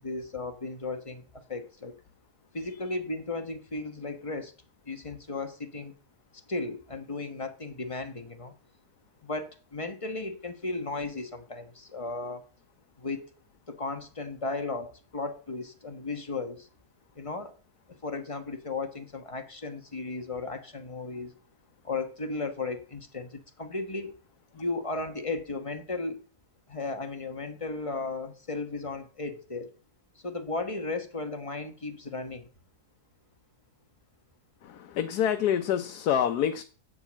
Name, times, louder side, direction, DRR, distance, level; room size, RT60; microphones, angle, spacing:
voice 1, 0.0-1.9 2.5-4.5 4.9-5.9 6.3-8.5 9.2-12.4 13.0-13.3 13.7-16.7 17.1-17.6 17.9-21.3 21.8-24.1 24.5-26.2 26.7-29.7 30.1-32.5, left 3 dB, 25° left, 1.1 m, -35 dB
voice 2, 34.6-36.6, left 9 dB, 80° left, 1.3 m, -27 dB
8.3 x 8.1 x 7.4 m
omnidirectional pair, 1.7 m